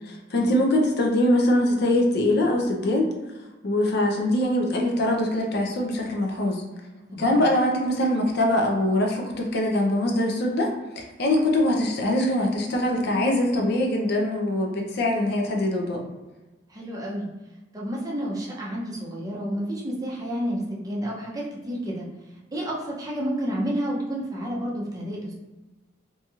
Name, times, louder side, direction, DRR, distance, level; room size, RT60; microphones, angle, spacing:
voice 1, 0.1-3.1 3.6-6.6 7.2-16.0, left 1 dB, 60° left, 1 dB, 0.5 m, -23 dB
voice 2, 7.1-7.4 16.7-17.3 17.7-22.1 22.5-25.3, equal, 20° right, -4 dB, 0.5 m, -30 dB
2.9 x 2.7 x 2.3 m, 1.1 s
head